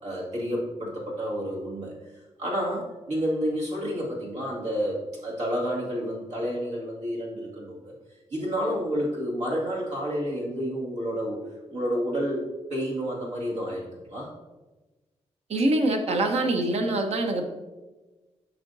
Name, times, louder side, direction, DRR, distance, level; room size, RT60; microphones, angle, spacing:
voice 1, 0.0-1.9 2.4-7.9 8.3-11.4 11.7-12.4 12.7-14.3, equal, 80° right, -4 dB, 2.2 m, -30 dB
voice 2, 15.5-17.5, right 2 dB, 65° right, 5 dB, 0.9 m, -24 dB
8.6 x 5.7 x 2.7 m, 1.2 s
cardioid pair, 95°, 12 cm